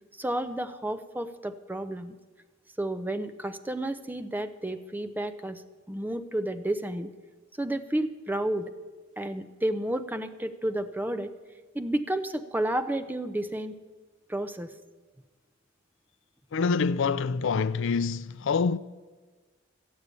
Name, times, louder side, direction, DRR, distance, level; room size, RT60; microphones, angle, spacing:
voice 1, 0.2-2.2 2.8-5.6 5.9-7.1 7.6-8.7 9.2-11.3 11.7-13.8 14.3-14.7, right 1 dB, 10° right, 0.6 m, -31 dB
voice 2, 16.5-18.8, left 5 dB, 65° left, 0.4 m, -26 dB
14.0 x 8.5 x 8.2 m
head